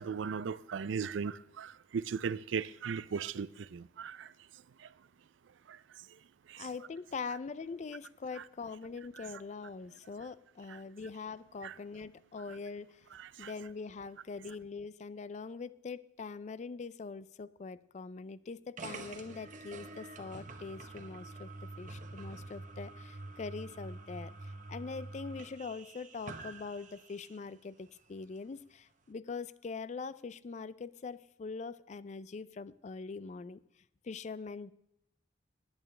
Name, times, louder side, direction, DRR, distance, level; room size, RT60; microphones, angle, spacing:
voice 1, 0.0-4.3 4.8-4.9 5.7-6.2 6.5-6.7 8.4-8.5 9.1-9.3 10.7-10.8 11.6-11.8 13.1-13.5, right 6 dB, 80° right, 0.4 m, -38 dB
voice 2, 6.5-13.1 13.4-33.6 34.0-34.7, left 4 dB, 40° left, 0.3 m, -43 dB
sound 1, 18.8-27.5, right 2 dB, 40° right, 1.0 m, -47 dB
21.5 x 8.8 x 3.3 m
head